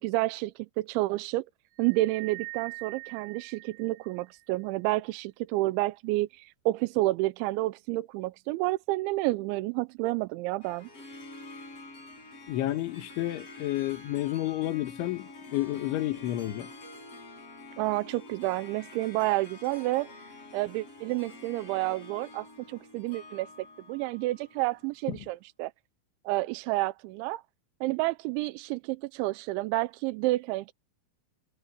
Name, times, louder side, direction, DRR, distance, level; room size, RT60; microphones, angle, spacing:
voice 1, 0.0-1.5 1.8-10.9 17.8-20.2 20.5-23.5 23.9-25.7 26.3-27.4 27.8-30.7, right 19 dB, 90° right, 3.0 m, -30 dB
sound 1, 1.8-4.4, right 30 dB, 70° right, 4.9 m, -44 dB
Harp, 10.6-25.1, left 2 dB, 30° left, 8.3 m, -48 dB
voice 2, 12.5-16.7, left 15 dB, 90° left, 4.0 m, -31 dB
omnidirectional pair, 5.3 m